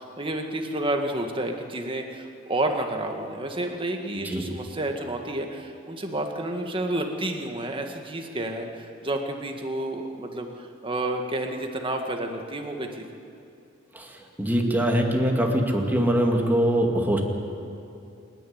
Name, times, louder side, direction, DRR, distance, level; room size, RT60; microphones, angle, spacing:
voice 1, 0.0-13.1, right 1 dB, 25° right, 3 dB, 1.8 m, -30 dB
voice 2, 13.9-17.2, equal, 10° right, 1 dB, 2.3 m, -23 dB
28.0 x 10.5 x 9.6 m, 2.6 s
head